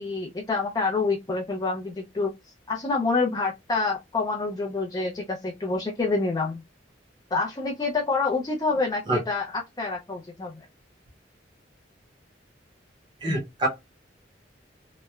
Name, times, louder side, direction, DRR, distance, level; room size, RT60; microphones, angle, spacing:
voice 1, 0.0-6.6 7.3-10.5, left 3 dB, 20° left, 0.3 m, -27 dB
voice 2, 13.2-13.7, right 1 dB, 25° right, 0.6 m, -25 dB
2.9 x 2.0 x 2.2 m
head